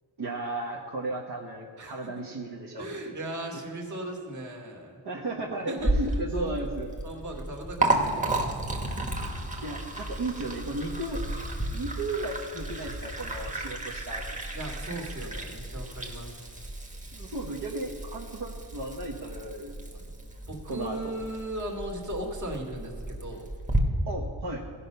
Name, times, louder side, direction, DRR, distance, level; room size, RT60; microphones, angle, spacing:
voice 1, 0.2-3.1 5.0-6.9 9.6-11.2 11.7-14.2 17.1-20.1 20.7-21.1 24.1-24.6, right 2 dB, 55° right, -3 dB, 1.4 m, -35 dB
voice 2, 2.8-5.0 5.7-6.6 7.0-8.6 14.5-16.5 20.5-23.5, right 1 dB, 40° right, 1 dB, 2.3 m, -37 dB
Liquid, 5.8-23.8, right 2 dB, 15° right, 1.5 m, -33 dB
16.0 x 5.7 x 5.4 m, 2.4 s
cardioid pair, 100°, 47 cm